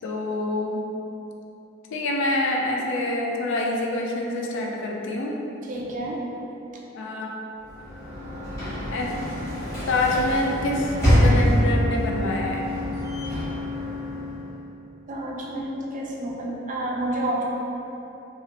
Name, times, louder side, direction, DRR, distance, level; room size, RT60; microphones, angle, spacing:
voice 1, 0.0-0.8 1.9-5.3 6.9-7.3 8.9-9.3 9.9-12.7, left 1 dB, 65° left, 0 dB, 0.4 m, -26 dB
voice 2, 5.7-6.2 15.1-17.4, right 1 dB, 40° right, -3 dB, 0.4 m, -29 dB
Sliding door / Slam, 7.6-14.6, equal, 15° left, 1.0 m, -25 dB
2.9 x 2.4 x 2.9 m, 3.0 s
head